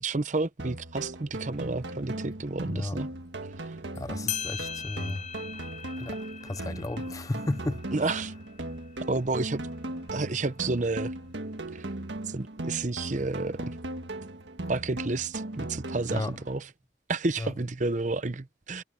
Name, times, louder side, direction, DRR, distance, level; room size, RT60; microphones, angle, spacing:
voice 1, 0.0-3.1 7.9-8.3 9.1-9.7 10.1-11.1 11.7-11.9 12.3-13.8 14.7-16.7 17.1-18.8, right 3 dB, 40° right, 0.8 m, -30 dB
sound 1, 0.6-16.6, right 1 dB, 70° right, 1.6 m, -38 dB
voice 2, 2.7-3.0 4.0-5.2 6.0-6.2 6.4-7.8 16.1-16.3 17.4-17.5, left 2 dB, 20° left, 0.3 m, -33 dB
sound 2, 3.9-4.0 4.3-9.4, left 9 dB, 35° left, 0.8 m, -40 dB
head